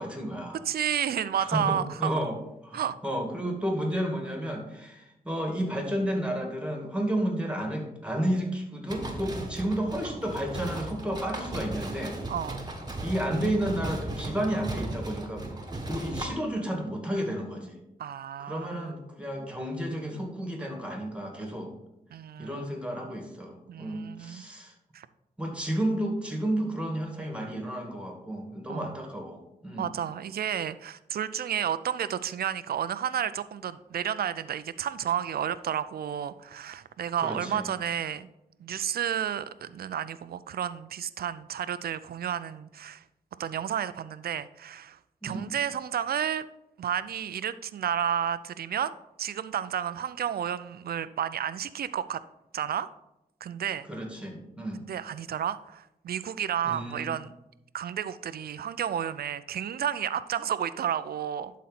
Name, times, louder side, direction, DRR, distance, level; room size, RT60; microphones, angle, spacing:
voice 1, 0.0-0.6 1.4-2.4 2.7-12.2 13.0-15.5 15.9-17.8 18.4-21.7 22.4-24.7 25.4-29.9 37.2-37.7 45.2-45.5 53.9-54.8 56.6-57.1, right 1 dB, 5° right, 2 dB, 2.3 m, -32 dB
voice 2, 0.7-2.2 2.7-2.9 12.3-12.6 18.0-18.9 22.1-22.7 23.7-24.4 24.9-25.1 28.7-28.9 29.8-38.3 38.6-43.0 43.4-46.5 46.8-52.2 52.5-52.9 53.4-53.9 54.9-57.3 57.7-61.5, right 9 dB, 80° right, 15 dB, 0.4 m, -31 dB
sound 1, 8.9-16.3, right 1 dB, 25° right, 1.4 m, -36 dB
11.5 x 4.2 x 4.2 m, 0.88 s
cardioid pair, 65°, 16 cm